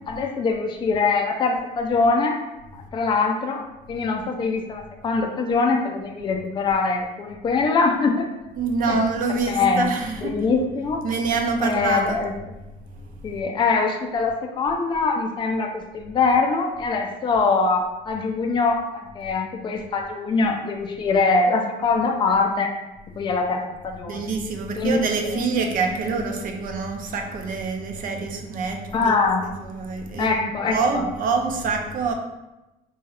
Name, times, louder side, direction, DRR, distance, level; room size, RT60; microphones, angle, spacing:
voice 1, 0.1-2.4 2.7-3.6 3.9-8.3 8.9-9.0 9.5-9.9 10.2-11.0 11.6-12.3 13.2-22.7 23.2-24.3 24.8-25.0 25.2-25.4 28.9-29.4 30.2-31.0, left 4 dB, 30° left, 0.3 m, -23 dB
voice 2, 8.6-10.4 11.0-12.2 12.9-13.4 24.1-29.2 29.4-32.1, right 4 dB, 55° right, 0.5 m, -26 dB
3.0 x 2.8 x 2.3 m
cardioid pair, 110°, 17 cm